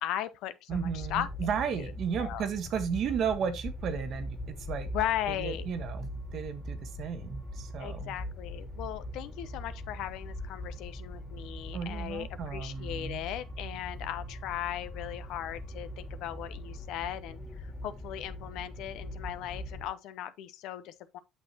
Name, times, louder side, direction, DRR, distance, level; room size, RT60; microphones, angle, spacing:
voice 1, 0.0-1.3 1.7-1.9 2.2-2.5 4.9-5.7 7.8-21.2, left 12 dB, 65° left, 0.7 m, -37 dB
sound 1, 0.7-19.9, left 1 dB, 25° left, 2.5 m, -41 dB
voice 2, 0.7-4.9 5.3-8.1 11.7-13.2, right 7 dB, 55° right, 1.2 m, -34 dB
8.4 x 6.1 x 2.8 m
hypercardioid pair, 65°, 0 cm